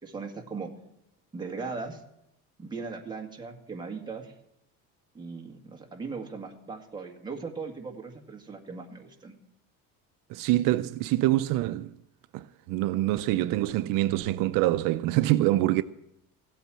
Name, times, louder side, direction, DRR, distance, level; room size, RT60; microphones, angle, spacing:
voice 1, 0.0-0.7 1.3-2.0 2.6-4.3 5.1-9.3, right 4 dB, 15° right, 1.8 m, -38 dB
voice 2, 10.3-11.9 12.3-15.8, right 16 dB, 70° right, 0.5 m, -25 dB
16.0 x 8.4 x 7.5 m
cardioid pair, 155°, 34 cm